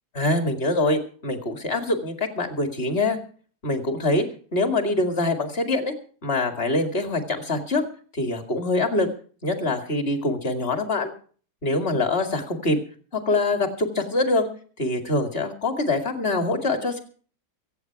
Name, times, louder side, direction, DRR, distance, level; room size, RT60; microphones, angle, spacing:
voice 1, 0.1-3.2 3.6-4.2 4.5-5.9 6.2-7.9 8.1-9.1 9.4-11.1 11.6-12.8 13.1-14.5 14.8-17.0, left 2 dB, 35° left, 5 dB, 2.4 m, -24 dB
24.0 x 8.7 x 4.6 m, 0.44 s
omnidirectional pair, 1.8 m